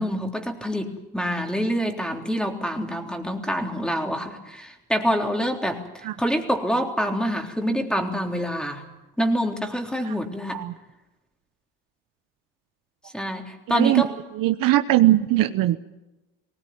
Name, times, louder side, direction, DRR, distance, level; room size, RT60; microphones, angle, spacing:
voice 1, 0.0-5.8 6.2-8.8 9.2-10.6 13.1-14.1, equal, ahead, 3 dB, 3.6 m, -26 dB
voice 2, 13.7-14.0 14.3-15.8, right 16 dB, 65° right, 11 dB, 1.1 m, -20 dB
20.5 x 18.0 x 9.5 m, 1.0 s
supercardioid pair, 95°, 36 cm